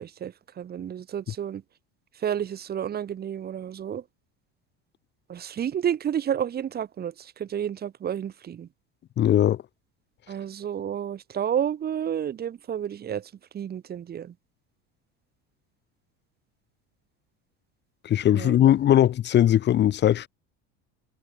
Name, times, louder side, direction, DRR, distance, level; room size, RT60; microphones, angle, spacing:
voice 1, 0.0-1.6 2.2-4.0 5.3-8.7 10.3-14.3 18.3-18.5, right 9 dB, 35° right, 2.6 m, -31 dB
voice 2, 9.2-9.6 18.0-20.3, left 11 dB, 35° left, 1.5 m, -20 dB
cardioid pair, 135°, 29 cm